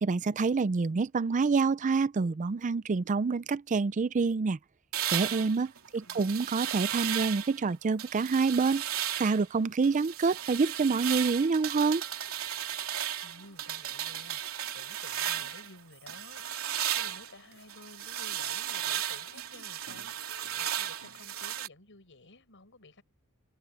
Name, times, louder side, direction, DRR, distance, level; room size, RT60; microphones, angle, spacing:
voice 1, 0.0-4.6 5.1-8.8 9.2-12.0, right 4 dB, 35° right, 0.4 m, -27 dB
sound 1, 4.9-7.6 8.0-9.5 9.8-15.7 16.1-21.7, right 11 dB, 70° right, 3.6 m, -35 dB
voice 2, 6.0-6.4 13.2-23.0, left 2 dB, 60° left, 6.6 m, -54 dB
head